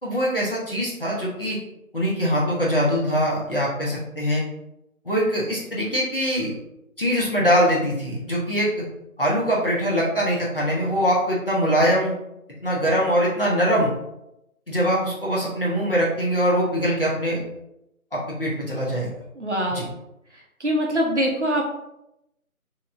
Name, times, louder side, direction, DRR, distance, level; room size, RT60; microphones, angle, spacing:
voice 1, 0.0-1.6 1.9-4.4 5.0-6.5 7.0-8.7 9.2-12.1 12.6-13.9 14.7-17.4 18.1-19.1 19.7-19.8, equal, 40° left, -6 dB, 0.9 m, -22 dB
voice 2, 19.4-19.9 20.6-21.6, equal, 55° right, -1 dB, 0.7 m, -23 dB
3.4 x 2.9 x 2.5 m, 0.85 s
figure-of-eight pair, 170°, 43 cm